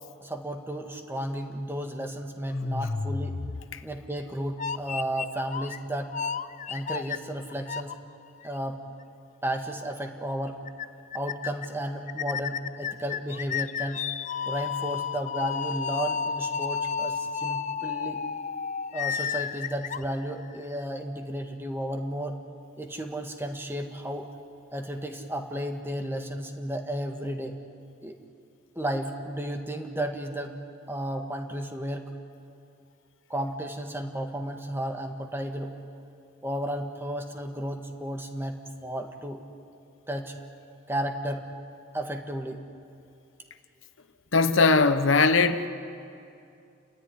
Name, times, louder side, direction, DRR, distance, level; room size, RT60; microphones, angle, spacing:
voice 1, 0.2-3.4 3.8-6.1 6.7-8.0 8.4-8.8 9.4-10.6 11.1-14.1 14.5-18.3 18.9-22.4 22.8-24.3 24.7-27.6 28.0-28.2 28.7-30.6 30.9-32.1 33.3-35.7 36.4-39.4 40.1-40.3 40.9-41.4 41.9-42.6, right 1 dB, 10° right, 4 dB, 1.6 m, -33 dB
sound 1, 2.5-4.1 4.6-5.8 6.1-7.9 8.4-8.5 9.5-9.6 9.9-10.0 10.3-10.4 10.7-10.9 11.1-11.7 12.1-20.7, left 6 dB, 40° left, 0.5 m, -32 dB
voice 2, 44.3-45.7, left 4 dB, 80° left, 10 dB, 1.0 m, -20 dB
30.0 x 13.5 x 9.9 m, 2.6 s
head